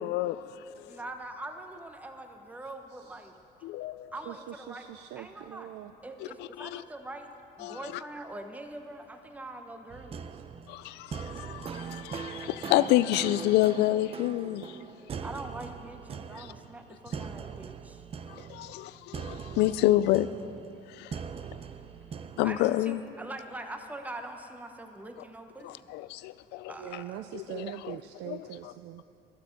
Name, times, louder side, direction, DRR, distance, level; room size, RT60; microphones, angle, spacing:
voice 1, 0.0-1.0 3.6-4.1 6.4-6.8 7.6-7.9 10.7-14.8 16.3-16.5 18.3-20.3 20.9-21.2 22.4-23.0 25.6-27.0 27.3-27.9 28.3-28.4, left 15 dB, 85° left, 0.4 m, -29 dB
voice 2, 0.9-3.3 4.1-4.8 5.2-5.7 6.0-7.3 7.6-10.3 15.2-18.0 22.4-25.9 26.7-27.2, right 2 dB, 10° right, 0.8 m, -43 dB
voice 3, 2.6-3.3 4.2-5.9 10.3-10.4 26.2-26.3 26.8-29.0, right 12 dB, 80° right, 0.5 m, -43 dB
sound 1, 9.9-22.8, right 6 dB, 35° right, 0.6 m, -41 dB
14.5 x 12.5 x 5.2 m
cardioid pair, 110°, 17 cm